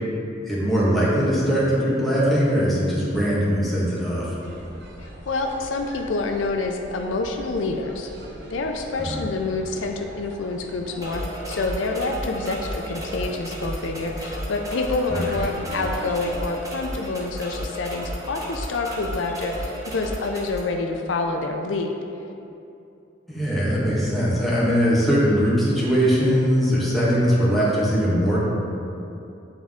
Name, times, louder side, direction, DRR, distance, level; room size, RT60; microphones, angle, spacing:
voice 1, 0.4-4.3 9.0-9.2 15.1-15.3 23.3-28.4, equal, ahead, -9 dB, 1.4 m, -21 dB
sound 1, 4.4-16.5, right 1 dB, 60° right, 0.8 m, -41 dB
voice 2, 5.0-8.1 8.5-21.9, left 3 dB, 85° left, 3 dB, 0.5 m, -27 dB
sound 2, 11.0-20.6, equal, 20° right, 0.8 m, -34 dB
8.6 x 3.5 x 3.6 m, 2.7 s
head